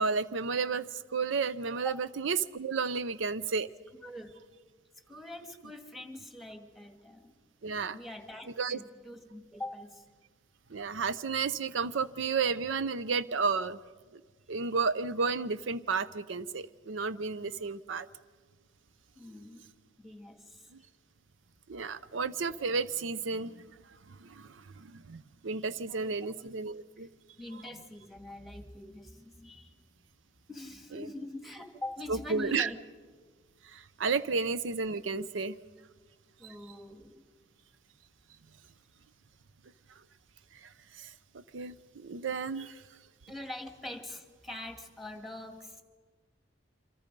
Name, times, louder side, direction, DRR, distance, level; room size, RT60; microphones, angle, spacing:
voice 1, 0.0-3.7 7.6-8.0 8.6-8.8 10.7-13.8 14.5-18.1 21.7-23.6 24.1-27.1 30.9-31.1 32.1-32.7 33.6-35.6 36.4-36.5 40.6-42.8, right 5 dB, 80° right, 15 dB, 0.6 m, -32 dB
voice 2, 5.1-7.4 7.9-10.1 19.2-19.7 20.0-20.9 25.5-26.1 27.0-27.1 27.4-29.7 30.5-32.8 36.4-37.2 43.3-45.8, left 1 dB, ahead, 6 dB, 1.8 m, -44 dB
28.0 x 25.5 x 5.3 m, 1.5 s
head